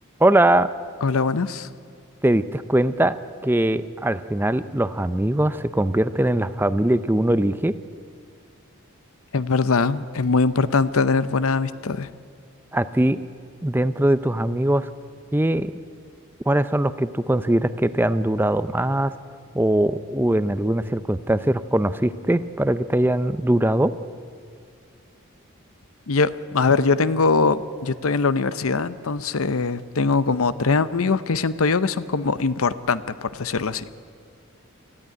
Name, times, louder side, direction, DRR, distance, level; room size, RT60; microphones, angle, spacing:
voice 1, 0.2-0.7 2.2-3.1 3.4-7.7 12.7-13.2 13.6-14.9 15.3-15.7 16.5-19.1 19.5-23.9, right 1 dB, 10° right, 13 dB, 0.5 m, -21 dB
voice 2, 1.0-1.7 9.3-12.1 26.1-33.8, left 4 dB, 75° left, 15 dB, 0.7 m, -22 dB
19.5 x 14.0 x 9.8 m, 2.3 s
head